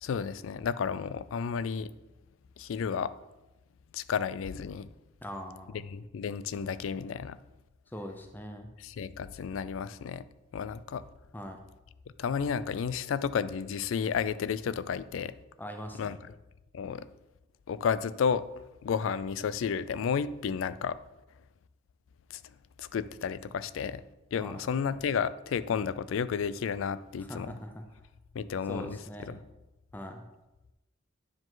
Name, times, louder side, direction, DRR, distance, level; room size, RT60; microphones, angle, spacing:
voice 1, 0.0-1.9 2.6-3.1 3.9-4.9 5.7-7.4 8.8-10.2 10.5-11.0 12.2-15.3 16.0-16.2 16.7-17.1 17.7-18.4 18.8-21.0 22.3-22.4 22.8-24.0 24.3-27.6 28.3-29.0 29.3-29.4, left 6 dB, 75° left, 15 dB, 0.3 m, -32 dB
voice 2, 5.2-5.8 7.9-8.7 11.3-11.6 15.6-16.2 24.4-24.6 27.2-27.8 28.7-29.3 29.9-30.2, equal, 10° left, 5 dB, 0.5 m, -41 dB
9.6 x 4.9 x 3.8 m, 0.99 s
head